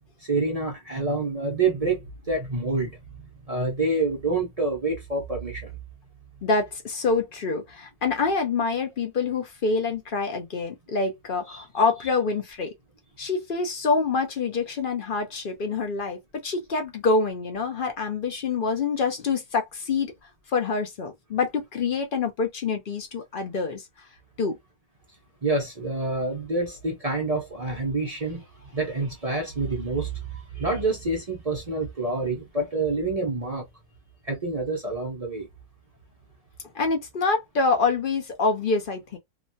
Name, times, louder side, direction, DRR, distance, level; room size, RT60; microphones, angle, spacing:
voice 1, 0.2-3.0 3.5-5.7 11.5-11.6 25.4-33.7 34.2-35.5, right 3 dB, 45° right, 0.5 m, -27 dB
voice 2, 6.4-12.7 13.2-20.1 20.5-24.1 24.4-24.6 36.7-39.2, left 4 dB, 55° left, 0.6 m, -26 dB
3.0 x 2.2 x 2.6 m
omnidirectional pair, 1.7 m